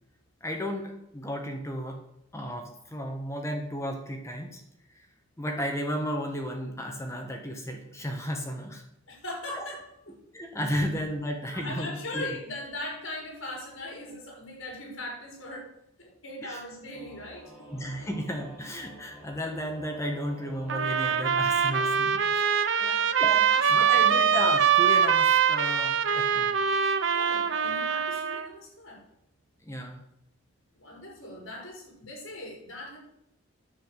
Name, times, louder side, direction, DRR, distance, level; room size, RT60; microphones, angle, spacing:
voice 1, 0.4-2.0 2.3-4.6 4.9-5.1 5.4-8.8 9.5-9.7 10.3-12.2 16.4-16.6 17.7-22.4 23.2-26.6 29.6-30.0, equal, 15° left, 2 dB, 1.5 m, -34 dB
voice 2, 9.1-10.2 10.7-10.8 11.5-15.7 16.0-17.7 18.0-18.1 22.7-24.2 27.1-29.1 30.7-33.0, left 1 dB, 65° left, -1 dB, 5.5 m, -40 dB
Singing / Musical instrument, 16.9-22.0, equal, 5° right, 4.7 m, -49 dB
sound 1, 20.7-28.5, right 7 dB, 65° right, 0.8 m, -23 dB
10.0 x 7.0 x 8.3 m, 0.80 s
head